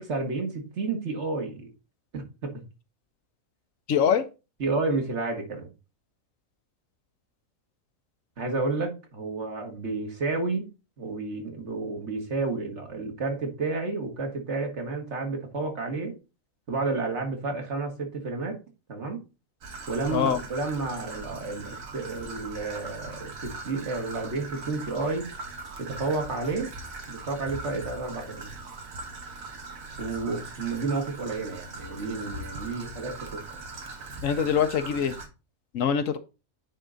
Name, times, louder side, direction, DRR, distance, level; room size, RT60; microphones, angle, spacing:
voice 1, 0.0-1.7 2.1-2.6 4.6-5.7 8.4-10.7 11.0-16.2 16.7-18.6 18.9-19.2 19.9-25.3 25.8-26.7 27.1-28.5 30.0-33.6, right 3 dB, 55° right, 1.7 m, -31 dB
voice 2, 3.9-4.3 20.1-20.4 34.2-35.2 35.7-36.2, left 7 dB, 70° left, 1.1 m, -24 dB
Traffic noise roadway noise / Trickle dribble, 19.6-35.3, right 3 dB, 75° right, 1.5 m, -40 dB
9.1 x 3.7 x 3.8 m
omnidirectional pair, 1.5 m